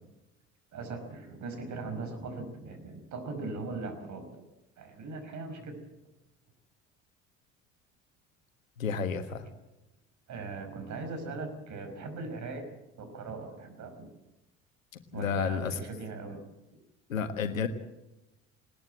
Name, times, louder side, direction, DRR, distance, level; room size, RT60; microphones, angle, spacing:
voice 1, 0.7-4.4 4.8-5.8 10.3-12.7 13.0-14.1 15.1-16.4, right 3 dB, 45° right, 7 dB, 5.3 m, -39 dB
voice 2, 8.8-9.5 15.1-15.8 17.1-17.7, left 6 dB, 80° left, 9 dB, 1.6 m, -31 dB
20.0 x 19.5 x 7.6 m, 0.97 s
figure-of-eight pair, 60°, 40 cm